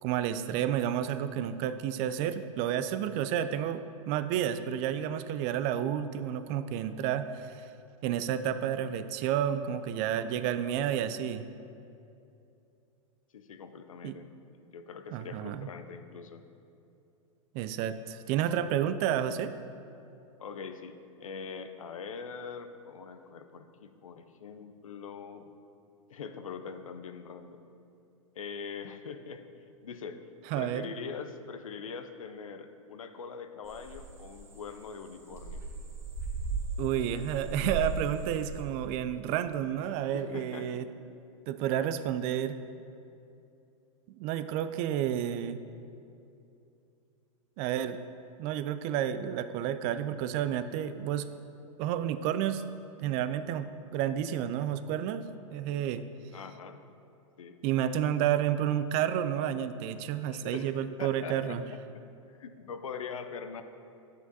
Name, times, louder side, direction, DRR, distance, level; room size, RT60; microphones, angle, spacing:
voice 1, 0.0-7.7 8.0-11.4 14.0-14.2 15.1-15.7 17.5-19.5 30.5-30.8 36.8-40.8 41.5-42.6 44.2-45.6 47.6-48.0 48.4-51.3 51.8-52.6 53.0-56.0 57.6-61.6, right 10 dB, 40° right, 12 dB, 0.4 m, -30 dB
voice 2, 13.3-14.3 14.7-16.4 20.4-20.9 21.2-25.6 26.1-27.6 28.3-30.2 30.5-35.6 40.1-40.8 56.3-56.8 57.4-57.6 60.3-62.0 62.4-63.6, left 5 dB, 80° left, 8 dB, 0.6 m, -43 dB
sound 1, 33.7-38.6, right 3 dB, 15° right, 1.1 m, -37 dB
9.2 x 8.1 x 2.8 m, 2.6 s
hypercardioid pair, 105°, 17 cm